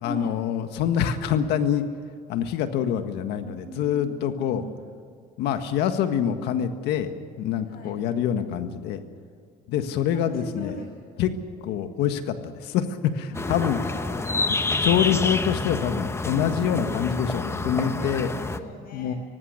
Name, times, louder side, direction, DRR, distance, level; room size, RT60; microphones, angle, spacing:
voice 1, 0.0-1.8 2.3-4.6 5.4-7.1 7.4-9.0 9.7-10.7 11.2-11.3 11.6-13.8 14.8-18.3 18.9-19.1, left 9 dB, 90° left, 8 dB, 1.7 m, -25 dB
voice 2, 3.4-4.8 7.6-7.9 10.1-10.9 13.3-14.5 17.4-19.2, left 1 dB, 65° left, 3 dB, 7.1 m, -39 dB
sound 1, 13.3-18.6, left 3 dB, 15° left, 1.0 m, -28 dB
18.5 x 15.5 x 9.7 m, 2.3 s
cardioid pair, 110°, 17 cm